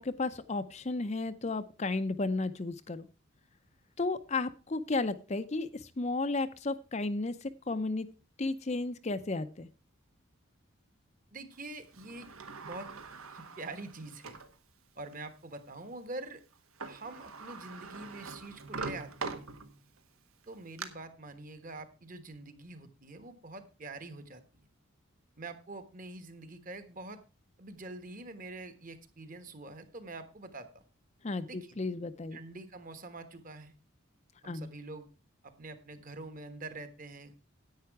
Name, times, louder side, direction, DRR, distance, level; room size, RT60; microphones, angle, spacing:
voice 1, 0.0-3.1 4.0-8.1 8.4-9.7 31.2-32.4 34.4-34.7, left 3 dB, 30° left, 11 dB, 0.5 m, -33 dB
voice 2, 11.3-12.3 12.6-12.9 13.3-14.4 15.0-16.4 16.9-19.5 20.5-24.6 25.4-27.2 27.6-30.8 31.5-31.8 32.3-33.7 34.4-35.1 35.4-37.4, right 2 dB, 40° right, 10 dB, 1.3 m, -45 dB
Sliding door, 11.9-14.5 15.1-15.2 16.5-16.6 16.8-20.0 20.4-20.9, right 4 dB, 80° right, 1.4 m, -43 dB
10.5 x 8.9 x 4.7 m, 0.32 s
head